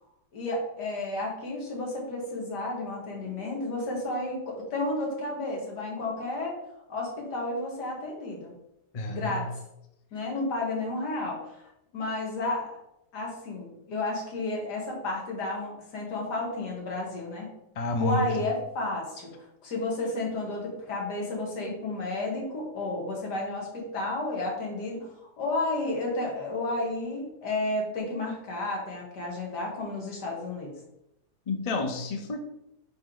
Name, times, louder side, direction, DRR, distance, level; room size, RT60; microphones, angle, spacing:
voice 1, 0.3-6.6 6.9-8.5 9.1-9.5 10.1-12.8 13.1-17.5 18.0-30.7, left 2 dB, 85° left, -1 dB, 2.2 m, -32 dB
voice 2, 8.9-9.4 17.8-18.4 31.5-32.4, left 2 dB, 40° left, 5 dB, 0.5 m, -29 dB
9.3 x 3.4 x 3.9 m, 0.85 s
omnidirectional pair, 1.7 m